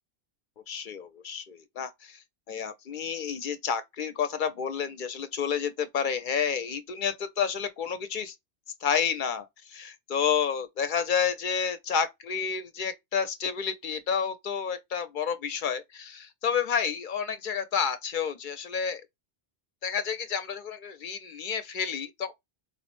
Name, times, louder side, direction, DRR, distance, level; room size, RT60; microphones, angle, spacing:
voice 1, 0.7-8.3 8.8-19.0 19.8-22.3, left 7 dB, 60° left, 0.7 m, -30 dB
4.4 x 2.0 x 3.0 m
omnidirectional pair, 1.1 m